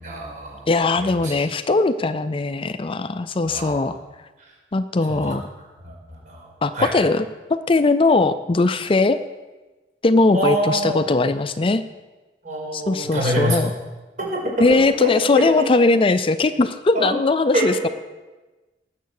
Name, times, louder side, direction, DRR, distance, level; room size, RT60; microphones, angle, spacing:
voice 1, 0.0-0.7 1.0-1.4 3.4-4.0 5.1-5.3 5.8-6.9 10.3-11.0 12.4-13.6 14.2-14.4 14.7-15.1 15.4-15.6 16.9-17.2 17.5-17.7, right 1 dB, 45° right, -2 dB, 5.1 m, -25 dB
voice 2, 0.7-4.0 4.7-5.4 6.6-9.2 10.0-11.8 12.7-13.7 14.6-17.9, left 3 dB, 30° left, 11 dB, 0.5 m, -19 dB
19.5 x 7.4 x 6.6 m, 1.2 s
head